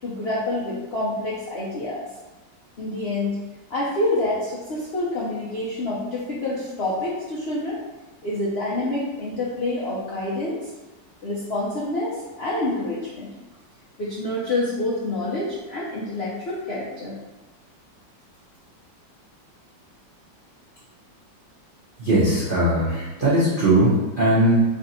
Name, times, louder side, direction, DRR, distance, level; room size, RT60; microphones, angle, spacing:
voice 1, 0.0-2.0 2.8-7.8 8.2-10.7 11.2-13.3 14.0-17.2, left 2 dB, 85° left, -6 dB, 0.5 m, -27 dB
voice 2, 22.0-24.6, right 1 dB, 60° right, -10 dB, 0.5 m, -19 dB
3.2 x 2.6 x 4.0 m, 1.1 s
omnidirectional pair, 2.0 m